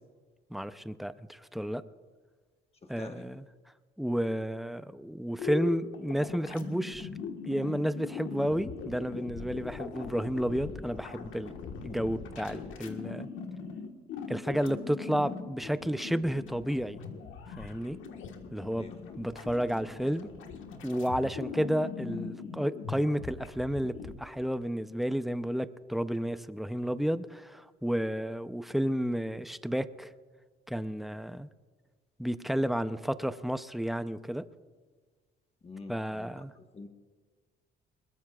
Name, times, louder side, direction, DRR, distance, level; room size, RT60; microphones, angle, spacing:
voice 1, 0.5-1.8 2.9-3.4 4.0-7.1 7.5-11.5 11.8-13.3 14.3-17.0 17.6-18.0 18.5-18.9 19.2-20.3 20.8-30.1 30.7-31.5 32.2-34.4 35.9-36.5, equal, ahead, 12 dB, 0.6 m, -31 dB
voice 2, 2.8-3.3 18.8-19.2 35.6-36.9, left 3 dB, 30° left, 5 dB, 1.4 m, -47 dB
sound 1, 5.4-24.1, left 6 dB, 85° left, 1.5 m, -41 dB
21.5 x 19.5 x 2.4 m, 1.5 s
cardioid pair, 90°, 20 cm